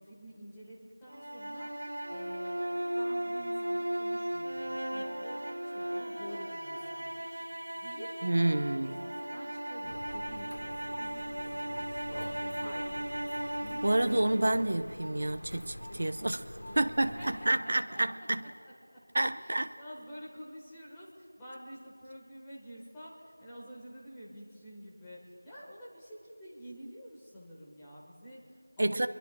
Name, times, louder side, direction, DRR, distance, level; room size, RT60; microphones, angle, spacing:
voice 1, 0.0-2.6 2.9-7.5 7.8-8.1 8.7-9.0 9.3-13.2 16.7-19.0 19.3-29.1, equal, 5° left, 1.2 m, -49 dB
sound 1, 1.1-15.2, right 1 dB, 65° right, 1.7 m, -37 dB
voice 2, 8.2-8.9 13.8-16.4 16.8-18.4 19.1-19.7 28.8-29.1, right 1 dB, 35° right, 0.6 m, -29 dB
sound 2, 9.8-17.6, equal, 90° left, 1.3 m, -45 dB
28.5 x 22.5 x 2.2 m
figure-of-eight pair, 180°, 0 cm